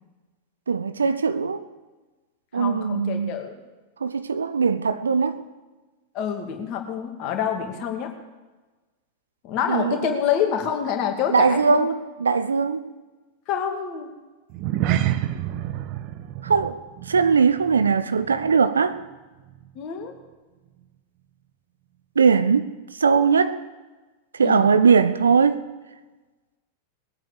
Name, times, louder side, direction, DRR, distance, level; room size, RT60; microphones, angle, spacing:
voice 1, 0.7-1.6 2.5-3.4 4.0-5.4 9.7-10.1 11.3-12.8 16.4-16.8 17.1-19.0 22.2-23.6 24.3-25.6, right 5 dB, 70° right, 0.7 m, -20 dB
voice 2, 2.5-3.6 6.1-8.1 9.4-11.9 13.5-14.1 19.7-20.1 24.4-24.7, left 8 dB, 40° left, 2.5 m, -27 dB
sound 1, 14.5-19.1 19.4-19.7 20.2-20.3, right 12 dB, 40° right, 0.8 m, -29 dB
20.5 x 9.0 x 7.0 m
figure-of-eight pair, 90°, 0 cm